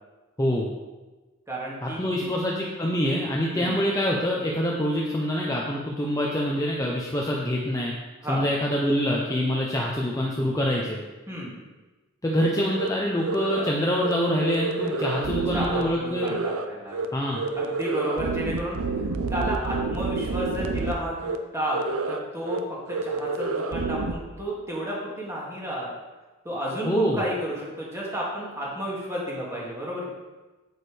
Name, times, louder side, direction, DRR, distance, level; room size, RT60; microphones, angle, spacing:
voice 1, 0.4-0.7 1.8-7.9 8.3-11.0 12.2-16.3 17.1-17.4 26.8-27.2, equal, 15° left, -3 dB, 0.7 m, -25 dB
voice 2, 1.5-2.0 3.5-3.8 8.2-8.5 11.3-11.5 14.8-15.3 15.5-17.2 17.6-18.8 19.3-25.9 26.4-30.1, right 1 dB, 15° right, -5 dB, 2.2 m, -32 dB
sound 1, 12.7-12.9 13.2-13.7 14.0-14.1 14.4-15.8 16.1-16.6 16.9-17.0 17.3-20.9 21.2-21.4 21.7-22.2 22.4-22.6 22.9-24.1, right 3 dB, 80° right, 0.7 m, -28 dB
8.7 x 8.2 x 3.4 m, 1.2 s
head